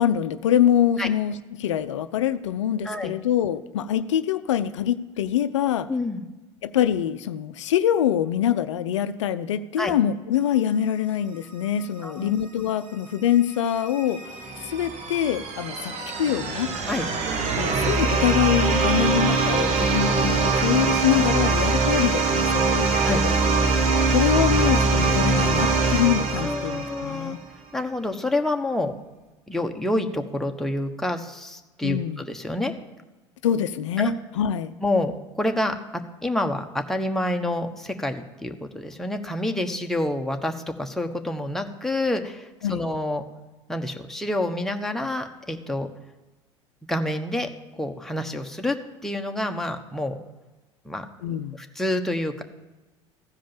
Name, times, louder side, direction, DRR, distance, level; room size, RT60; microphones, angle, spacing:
voice 1, 0.0-5.9 6.6-14.2 14.6-16.7 17.6-23.4 24.1-27.4 31.8-32.2 33.4-34.7 42.6-42.9 51.2-51.6, left 10 dB, 80° left, 12 dB, 0.5 m, -24 dB
voice 2, 5.9-6.2 9.8-9.9 12.0-12.3 16.9-17.0 23.0-23.2 26.4-27.4 27.7-28.9 29.5-32.7 34.0-34.1 34.8-43.2 43.7-45.9 46.9-47.5 47.8-48.8 49.0-50.2 50.8-51.0 51.5-52.4, left 1 dB, ahead, 4 dB, 1.1 m, -28 dB
sound 1, 13.5-27.3, right 4 dB, 45° right, 1.5 m, -23 dB
sound 2, 15.7-21.6, right 1 dB, 15° right, 1.8 m, -42 dB
15.0 x 5.2 x 7.2 m, 1.2 s
hypercardioid pair, 75°, 15 cm